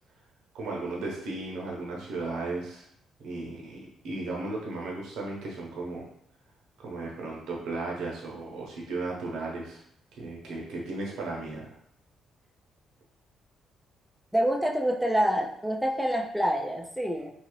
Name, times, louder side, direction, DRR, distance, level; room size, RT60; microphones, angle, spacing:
voice 1, 0.5-2.9 3.2-3.8 4.0-6.1 6.8-9.8 10.1-11.7, right 2 dB, 80° right, -3 dB, 0.8 m, -35 dB
voice 2, 14.3-17.3, equal, 5° right, 0 dB, 0.4 m, -26 dB
2.8 x 2.5 x 3.1 m, 0.70 s
cardioid pair, 90°, 0 cm